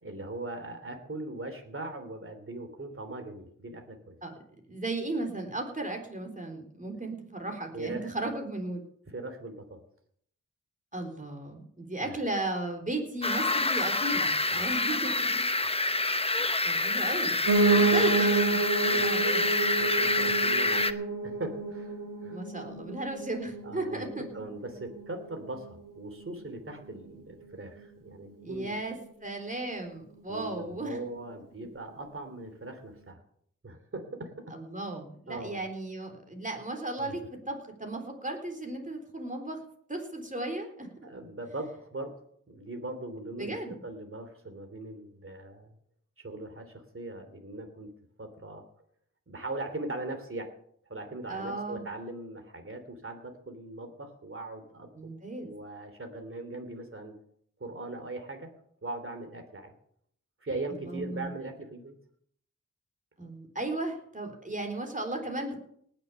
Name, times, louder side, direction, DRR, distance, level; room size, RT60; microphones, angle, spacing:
voice 1, 0.0-4.2 7.7-8.3 9.1-9.8 12.0-12.2 14.5-14.7 17.6-18.1 18.9-19.1 19.8-20.9 21.2-22.4 23.6-28.8 30.3-33.2 33.6-34.5 35.3-35.6 37.0-37.2 41.0-42.2 42.5-45.7 46.2-47.9 48.2-48.6 49.3-50.5 50.9-54.9 55.4-57.1 57.6-58.5 58.8-59.7 60.4-61.9, right 2 dB, 40° right, 6 dB, 3.0 m, -40 dB
voice 2, 4.7-8.8 10.9-15.9 16.6-17.4 17.7-18.6 19.0-19.5 22.3-24.3 28.4-31.0 34.5-39.6 39.9-40.9 43.4-43.8 51.3-51.8 55.0-55.5 60.9-61.3 63.2-65.6, right 2 dB, 25° right, 3 dB, 3.7 m, -35 dB
sound 1, 13.2-20.9, left 2 dB, 20° left, 0.8 m, -27 dB
Piano, 17.5-26.6 27.0-28.1 28.4-28.5 28.7-28.8 29.1-29.2 29.7-29.8, right 4 dB, 90° right, 2.5 m, -30 dB
19.0 x 6.9 x 6.9 m, 0.66 s
wide cardioid pair, 80°, 32 cm